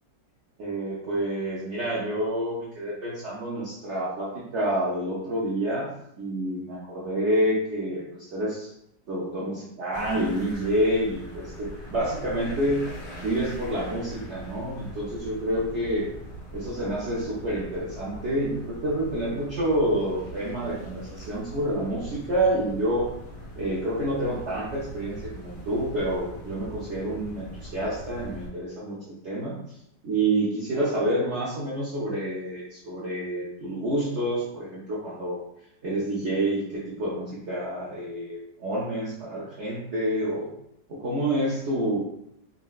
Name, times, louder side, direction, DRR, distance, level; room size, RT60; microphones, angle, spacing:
voice 1, 0.6-5.9 6.2-8.0 8.3-8.7 9.1-12.8 13.2-16.1 16.5-23.1 23.6-29.6 30.0-35.4 35.8-40.5 40.9-42.0, right 1 dB, 75° right, -7 dB, 0.6 m, -28 dB
sound 1, 9.9-28.5, equal, 90° left, 1.4 m, -41 dB
3.9 x 2.1 x 2.3 m, 0.77 s
omnidirectional pair, 1.9 m